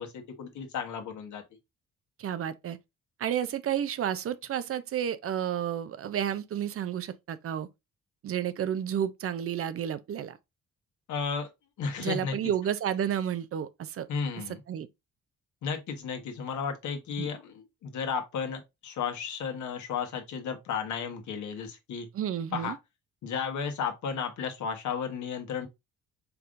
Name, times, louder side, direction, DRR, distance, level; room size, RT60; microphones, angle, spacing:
voice 1, 0.0-1.4 11.1-11.5 11.8-12.3 14.1-14.6 15.6-22.1 22.5-22.7 23.2-25.7, left 6 dB, 70° left, 1.2 m, -33 dB
voice 2, 2.2-2.8 3.2-7.7 8.2-10.4 12.0-14.1 14.7-14.9 17.2-17.3 22.1-22.8, right 9 dB, 50° right, 0.5 m, -31 dB
4.6 x 3.6 x 2.5 m
cardioid pair, 90°, 30 cm